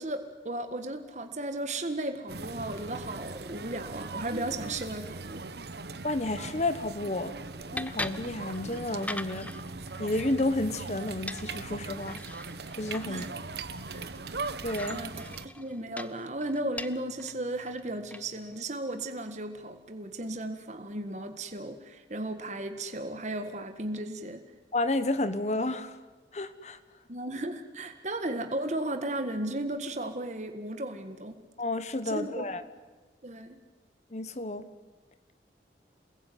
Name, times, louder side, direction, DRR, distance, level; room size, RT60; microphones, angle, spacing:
voice 1, 0.0-5.4 13.1-13.3 13.9-14.1 14.9-24.4 27.1-31.4 32.1-32.5 33.2-33.6, right 1 dB, 40° right, 7 dB, 1.7 m, -35 dB
sound 1, 2.3-15.5, right 3 dB, 65° right, 1.2 m, -40 dB
voice 2, 6.0-7.3 7.7-9.5 10.0-12.2 12.8-13.2 14.6-15.1 24.7-26.0 26.3-26.8 31.6-32.6 34.1-34.7, left 2 dB, 40° left, 12 dB, 1.2 m, -31 dB
sound 2, 6.6-18.6, left 2 dB, 10° left, 0.8 m, -44 dB
28.5 x 21.0 x 9.4 m, 1.3 s
head